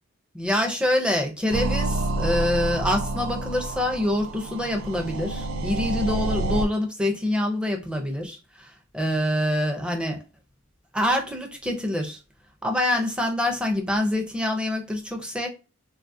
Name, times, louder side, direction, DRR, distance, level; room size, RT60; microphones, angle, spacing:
voice 1, 0.3-10.2 10.9-12.2 12.6-15.5, left 1 dB, 5° right, 0.5 m, -26 dB
sound 1, 1.5-6.7, right 1 dB, 60° right, 0.4 m, -28 dB
3.6 x 2.3 x 2.6 m
head